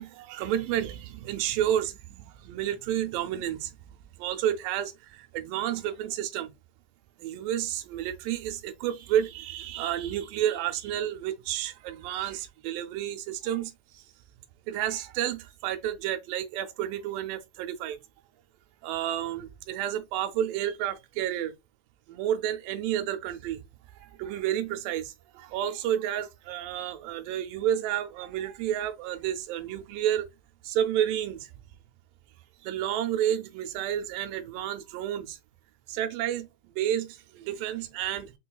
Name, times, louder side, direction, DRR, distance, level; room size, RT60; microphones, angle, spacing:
voice 1, 0.0-3.8 4.2-6.5 7.2-14.1 14.7-18.0 18.8-21.5 22.1-23.6 24.0-30.3 30.6-31.5 32.6-35.4 35.9-38.3, right 11 dB, 85° right, 2.2 m, -30 dB
5.7 x 2.3 x 2.2 m
omnidirectional pair, 3.9 m